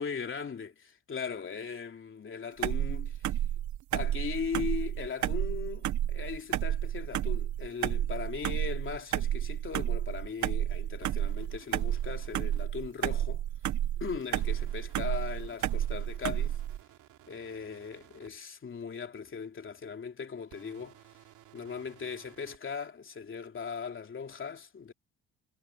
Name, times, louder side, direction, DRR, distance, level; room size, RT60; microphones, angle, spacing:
voice 1, 0.0-3.4 3.9-13.4 14.0-16.6 17.3-21.0 21.5-24.9, left 6 dB, 40° left, 3.1 m, -39 dB
sound 1, 2.6-16.8, right 12 dB, 70° right, 1.1 m, -31 dB
sound 2, 11.0-12.7 14.4-18.3 20.5-22.6, right 13 dB, 85° right, 2.8 m, -58 dB
cardioid pair, 90°, 30 cm